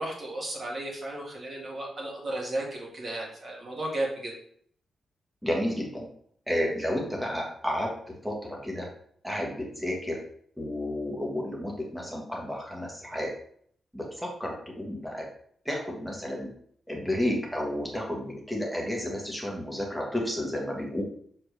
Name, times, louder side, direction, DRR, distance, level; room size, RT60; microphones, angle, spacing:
voice 1, 0.0-4.3, right 1 dB, 35° right, -3 dB, 1.9 m, -34 dB
voice 2, 5.4-6.1 6.5-7.9 8.2-8.3 8.6-8.8 9.2-10.2 10.6-13.3 13.9-14.0 14.4-15.2 15.7-16.5 16.9-21.0, left 1 dB, 5° right, -2 dB, 1.4 m, -31 dB
6.7 x 4.3 x 3.4 m, 0.63 s
wide cardioid pair, 175°, 0 cm